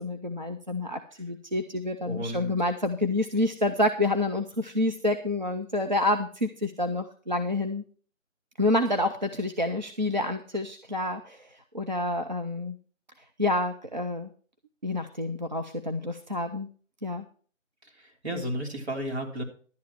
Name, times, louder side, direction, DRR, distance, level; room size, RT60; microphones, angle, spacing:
voice 1, 0.0-7.8 8.6-11.5 11.7-12.8 13.4-14.3 14.8-16.7 17.0-17.2, left 1 dB, 35° right, 5 dB, 0.6 m, -28 dB
voice 2, 2.0-2.5 18.0-19.4, equal, 55° right, 0 dB, 3.3 m, -33 dB
11.5 x 9.1 x 4.5 m, 0.42 s
figure-of-eight pair, 160°, 40 cm